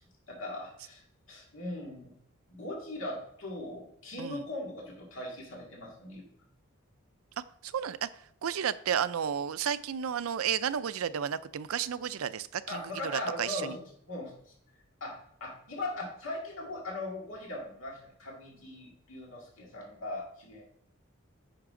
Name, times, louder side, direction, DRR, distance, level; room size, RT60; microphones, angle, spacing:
voice 1, 0.3-2.1 2.5-6.3 12.7-13.8 14.1-14.3 15.0-20.6, left 1 dB, 65° left, -1 dB, 2.1 m, -39 dB
voice 2, 7.6-8.1 8.4-12.8 13.1-13.8, right 8 dB, 85° right, 15 dB, 0.4 m, -32 dB
9.9 x 5.9 x 3.7 m, 0.68 s
head